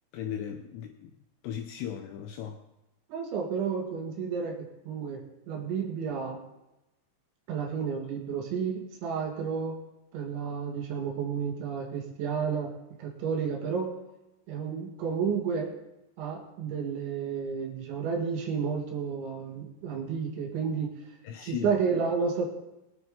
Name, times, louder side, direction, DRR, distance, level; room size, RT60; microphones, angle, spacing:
voice 1, 0.1-1.1 1.4-2.6 21.2-21.7, left 9 dB, 80° left, 2.6 m, -37 dB
voice 2, 3.1-6.4 7.5-9.8 10.1-12.7 13.0-13.9 14.5-15.7 16.2-20.9 21.4-22.5, right 6 dB, 70° right, 4.3 m, -31 dB
23.0 x 9.5 x 3.8 m
omnidirectional pair, 5.6 m